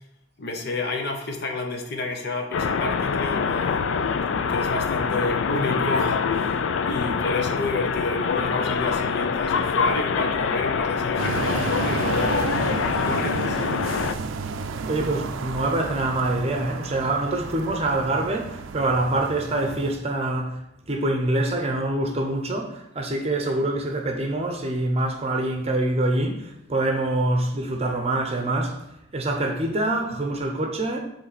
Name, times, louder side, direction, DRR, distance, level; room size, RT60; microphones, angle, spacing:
voice 1, 0.4-3.8 4.5-6.5 6.9-13.6, left 3 dB, 55° left, 0.8 m, -29 dB
sound 1, 2.5-14.1, left 5 dB, 70° left, 0.4 m, -25 dB
sound 2, 11.2-20.0, right 4 dB, 80° right, 0.4 m, -32 dB
voice 2, 14.9-20.6 20.9-28.8 29.1-31.0, right 2 dB, 30° right, 0.7 m, -25 dB
7.2 x 3.3 x 4.2 m
head